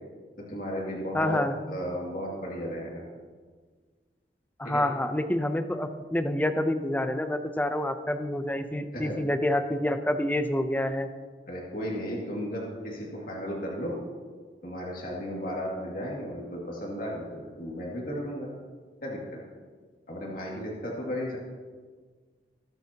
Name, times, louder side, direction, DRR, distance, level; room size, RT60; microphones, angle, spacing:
voice 1, 0.5-1.4 1.7-3.0 4.6-4.8 8.9-9.2 11.5-14.0 14.6-18.5 19.0-19.2 20.1-21.4, equal, 50° left, -3 dB, 2.4 m, -34 dB
voice 2, 1.1-1.5 4.6-11.1, left 1 dB, 10° left, 8 dB, 0.6 m, -27 dB
20.5 x 8.1 x 2.9 m, 1.5 s
head